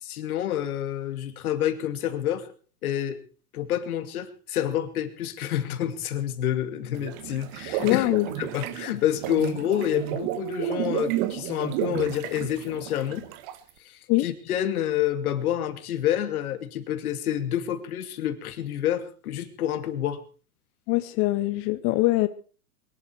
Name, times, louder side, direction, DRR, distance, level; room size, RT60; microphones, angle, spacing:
voice 1, 0.0-2.5 2.8-3.2 3.5-8.1 8.4-13.3 13.8-20.2, left 11 dB, 70° left, 9 dB, 2.6 m, -28 dB
sound 1, 6.9-13.7, right 15 dB, 45° right, 1.5 m, -32 dB
voice 2, 7.8-8.3 14.1-14.3 20.9-22.3, left 19 dB, 30° left, 12 dB, 0.7 m, -23 dB
22.0 x 12.0 x 4.6 m, 0.37 s
hypercardioid pair, 135°, 45 cm